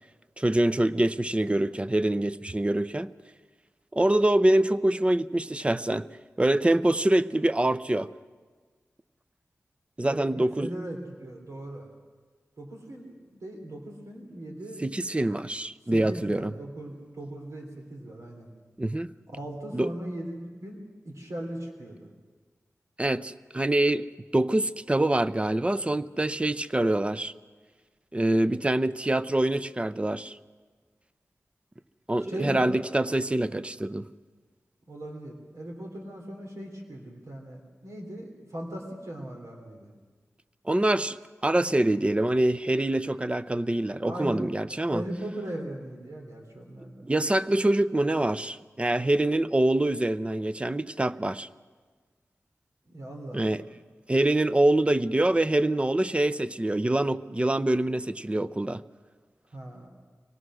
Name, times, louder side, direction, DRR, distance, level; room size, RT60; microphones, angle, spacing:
voice 1, 0.4-3.1 3.9-6.1 6.4-8.1 10.0-10.7 14.8-16.5 18.8-19.1 19.7-19.9 23.0-24.1 24.3-27.3 28.1-30.4 32.1-34.1 40.7-41.2 41.4-45.0 47.0-51.5 53.3-53.6 54.1-58.8, right 1 dB, 20° right, 15 dB, 0.6 m, -25 dB
voice 2, 10.0-11.9 12.6-14.8 15.9-18.5 19.3-20.8 21.0-22.1 32.3-32.8 34.9-39.9 44.0-44.4 44.9-47.1 52.9-53.7 59.5-59.9, right 1 dB, 80° right, 1 dB, 3.2 m, -38 dB
24.5 x 18.5 x 6.3 m, 1.5 s
cardioid pair, 55°, 5 cm